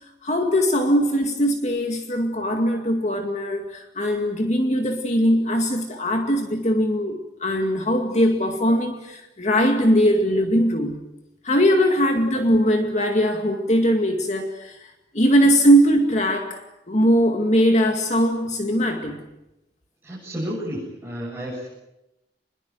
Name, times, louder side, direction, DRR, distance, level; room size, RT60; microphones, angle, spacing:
voice 1, 0.2-11.1 11.4-14.9 15.1-16.6 16.9-19.2, equal, 40° left, 2.2 m, -20 dB
voice 2, 20.0-21.7, equal, 10° right, 7.8 m, -31 dB
28.0 x 21.5 x 7.7 m
head